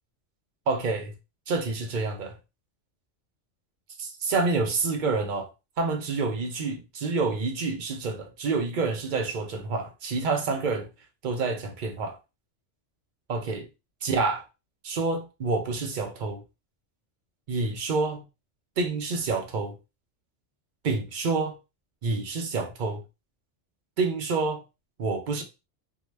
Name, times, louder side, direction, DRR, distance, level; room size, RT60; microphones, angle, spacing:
voice 1, 0.7-1.2 1.5-2.4 4.0-5.5 5.8-10.9 11.2-12.2 13.3-13.7 14.0-14.4 14.8-16.4 17.5-18.2 18.8-19.8 20.8-21.6 22.0-23.0 24.0-24.6 25.0-25.4, right 3 dB, 55° right, 0.6 m, -28 dB
2.7 x 2.1 x 3.2 m
omnidirectional pair, 1.3 m